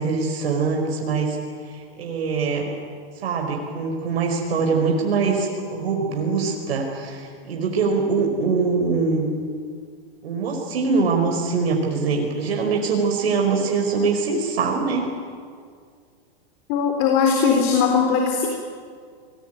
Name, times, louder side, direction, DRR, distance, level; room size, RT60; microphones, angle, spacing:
voice 1, 0.0-1.4 1.7-2.7 3.2-9.3 10.2-15.1, right 4 dB, 80° right, 1 dB, 5.2 m, -23 dB
voice 2, 16.7-18.5, left 6 dB, 45° left, 2 dB, 4.1 m, -19 dB
27.0 x 21.0 x 9.3 m, 2.1 s
hypercardioid pair, 130°, 31 cm